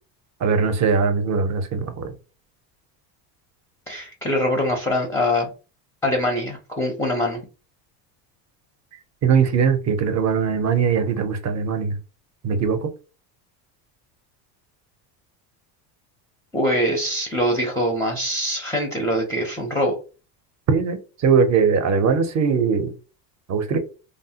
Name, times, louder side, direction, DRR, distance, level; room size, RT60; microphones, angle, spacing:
voice 1, 0.4-2.1 9.2-12.0 12.4-12.9 20.7-22.9 23.5-23.8, right 6 dB, 35° right, 0.6 m, -20 dB
voice 2, 3.9-5.5 6.0-7.4 16.5-19.9, left 1 dB, 5° left, 0.5 m, -23 dB
3.2 x 2.0 x 2.8 m
supercardioid pair, 115°, 48 cm